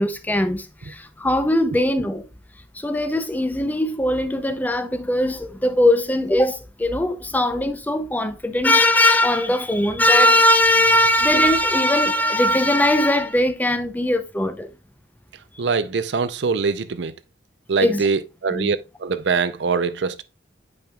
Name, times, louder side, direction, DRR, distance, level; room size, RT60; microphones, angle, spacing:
voice 1, 0.0-2.3 2.7-14.7 17.8-18.0 18.5-18.7, left 1 dB, 10° left, 0.5 m, -20 dB
voice 2, 15.6-17.1 17.7-20.2, right 5 dB, 70° right, 0.5 m, -23 dB
8.6 x 5.3 x 2.3 m
head